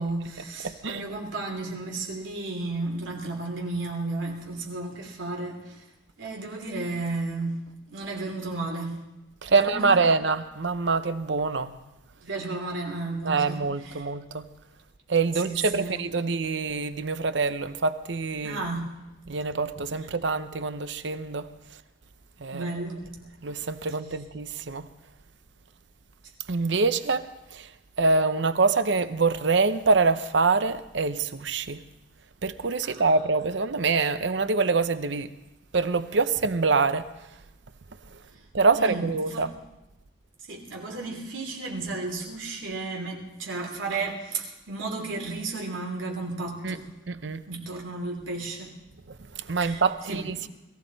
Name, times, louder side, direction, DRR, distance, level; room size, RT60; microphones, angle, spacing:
voice 1, 0.0-5.8 6.2-7.6 7.9-9.0 9.5-10.1 12.2-14.0 15.4-16.0 18.4-18.9 22.5-23.1 32.8-33.1 38.7-39.4 40.5-46.9 47.5-48.7 49.6-50.3, right 3 dB, 90° right, 3.0 m, -33 dB
voice 2, 0.6-1.0 9.4-11.7 13.2-14.5 15.1-18.7 19.3-21.5 22.4-22.7 23.4-24.9 26.5-27.7 28.0-31.8 32.4-35.3 35.7-37.1 38.5-39.5 46.6-46.8 47.1-47.4 49.4-50.5, right 4 dB, 70° right, 0.7 m, -25 dB
21.5 x 15.5 x 4.0 m
head